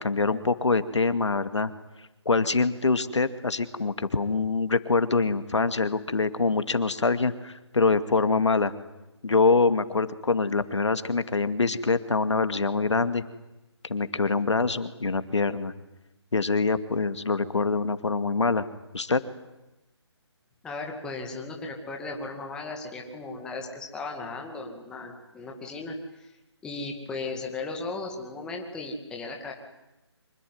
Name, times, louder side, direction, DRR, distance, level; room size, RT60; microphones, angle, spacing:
voice 1, 0.0-1.7 2.3-8.7 9.2-13.2 13.8-15.7 16.3-18.7 18.9-19.2, left 4 dB, 85° left, 11 dB, 2.3 m, -24 dB
voice 2, 20.6-26.3 26.6-29.5, left 3 dB, 5° left, 1 dB, 2.3 m, -36 dB
25.5 x 22.5 x 9.5 m, 0.98 s
hypercardioid pair, 165°, 15 cm